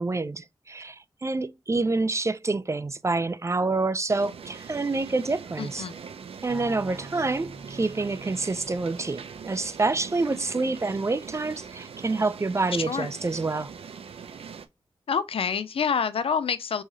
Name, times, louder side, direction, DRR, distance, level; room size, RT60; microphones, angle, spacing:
voice 1, 0.0-5.9 6.4-13.7, right 3 dB, 30° right, 0.4 m, -27 dB
sound 1, 4.1-14.7, right 6 dB, 80° right, 0.5 m, -42 dB
voice 2, 5.6-5.9 12.9-13.1 15.1-16.8, left 6 dB, 70° left, 0.5 m, -27 dB
sound 2, 6.5-10.6, right 3 dB, 5° right, 2.0 m, -46 dB
4.6 x 3.1 x 2.8 m
cardioid pair, 50°, 10 cm